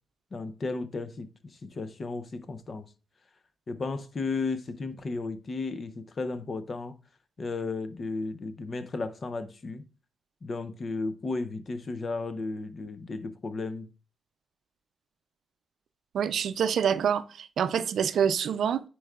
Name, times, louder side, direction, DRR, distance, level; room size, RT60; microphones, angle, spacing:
voice 1, 0.3-2.8 3.7-6.9 7.4-9.8 10.4-13.9, left 3 dB, 40° left, 0.7 m, -34 dB
voice 2, 16.1-18.8, right 8 dB, 75° right, 0.5 m, -26 dB
9.9 x 4.6 x 2.4 m
cardioid pair, 105°, 0 cm